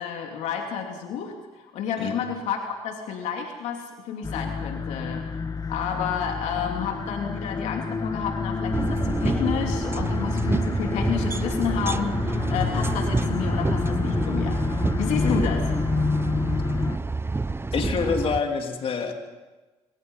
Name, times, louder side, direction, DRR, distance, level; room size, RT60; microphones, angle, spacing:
voice 1, 0.0-5.3 5.7-14.6 15.0-15.7 15.9-16.0, left 7 dB, 80° left, 3 dB, 3.0 m, -30 dB
sound 1, 4.2-17.0, left 4 dB, 30° left, 1.4 m, -28 dB
sound 2, 8.7-18.4, right 3 dB, 20° right, 1.0 m, -28 dB
voice 2, 17.7-19.1, left 5 dB, 55° left, 4 dB, 3.5 m, -26 dB
26.5 x 25.5 x 5.6 m, 1.2 s
supercardioid pair, 70°, 12 cm